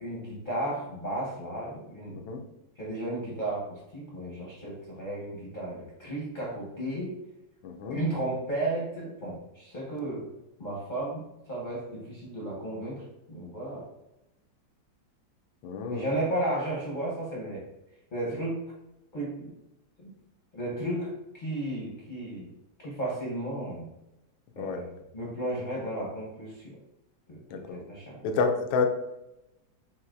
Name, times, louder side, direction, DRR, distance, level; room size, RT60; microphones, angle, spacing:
voice 1, 0.0-2.2 2.8-7.2 7.9-10.3 10.6-13.0 13.3-13.9 15.9-17.7 18.1-18.6 19.1-19.5 20.0-20.1 20.5-22.5 22.8-23.9 24.6-26.8 27.3-28.3, right 1 dB, 35° left, -5 dB, 0.8 m, -34 dB
voice 2, 7.6-8.0 15.6-16.0 24.6-24.8 27.5-27.8 28.2-28.9, left 4 dB, 80° left, 5 dB, 1.3 m, -29 dB
5.6 x 2.9 x 2.5 m, 0.91 s
omnidirectional pair, 2.0 m